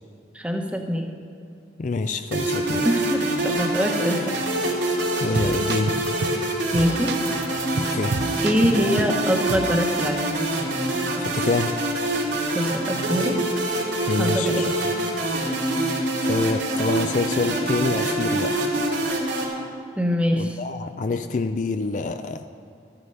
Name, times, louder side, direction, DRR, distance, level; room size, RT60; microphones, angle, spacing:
voice 1, 0.3-1.1 2.8-4.3 6.7-7.1 8.4-10.3 12.5-13.4 14.2-14.6 20.0-20.6, equal, 5° right, 2 dB, 1.0 m, -24 dB
voice 2, 1.8-2.9 5.2-6.0 7.8-8.2 11.2-11.8 14.1-14.7 16.3-18.6 20.4-22.4, left 3 dB, 45° left, 9 dB, 0.4 m, -26 dB
sound 1, 2.3-19.4, right 1 dB, 90° right, 2.4 m, -25 dB
sound 2, 4.3-4.6 4.8-4.9 5.4-6.4 6.7-9.2 9.5-9.7, right 3 dB, 65° right, 0.5 m, -30 dB
14.0 x 9.9 x 5.5 m, 2.5 s
head